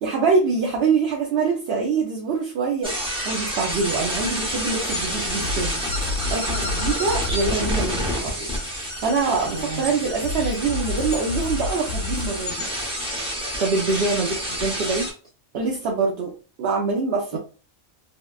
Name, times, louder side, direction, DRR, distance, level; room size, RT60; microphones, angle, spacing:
voice 1, 0.0-5.8 6.3-8.5 9.0-12.7 15.5-17.4, right 4 dB, 60° right, -1 dB, 0.8 m, -24 dB
sound 1, 2.8-15.1, equal, 5° right, 0.5 m, -28 dB
sound 2, 2.9-3.0 5.4-7.8 10.2-12.3, left 3 dB, 75° left, 1.0 m, -29 dB
voice 2, 9.5-9.8 13.6-15.1, right 3 dB, 85° right, -3 dB, 0.4 m, -24 dB
3.5 x 2.4 x 2.3 m, 0.37 s
omnidirectional pair, 1.4 m